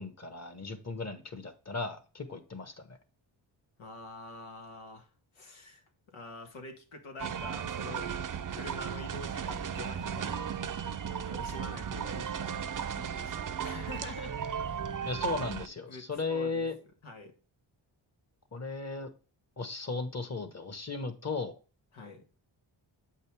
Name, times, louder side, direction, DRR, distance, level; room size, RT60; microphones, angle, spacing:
voice 1, 0.0-3.0 15.0-16.8 18.5-19.1 19.6-21.5, left 3 dB, 35° left, 1.5 m, -36 dB
voice 2, 3.8-8.1 8.5-10.5 11.1-12.6 12.9-14.4 15.0-15.4 15.9-16.7 17.0-17.4 21.9-22.2, left 3 dB, 90° left, 1.8 m, -46 dB
sound 1, 7.2-15.7, right 7 dB, 45° right, 0.7 m, -35 dB
7.9 x 5.5 x 3.5 m
cardioid pair, 80°, 47 cm